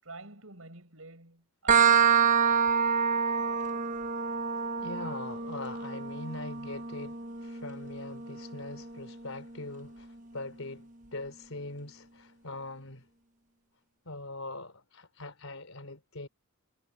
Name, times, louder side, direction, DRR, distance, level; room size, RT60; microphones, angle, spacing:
voice 1, 0.0-2.1, right 2 dB, 90° right, 6.3 m, -49 dB
sound 1, 1.7-9.1, right 7 dB, 40° right, 1.1 m, -27 dB
voice 2, 4.6-13.1 14.1-16.3, left 2 dB, 90° left, 3.6 m, -42 dB
head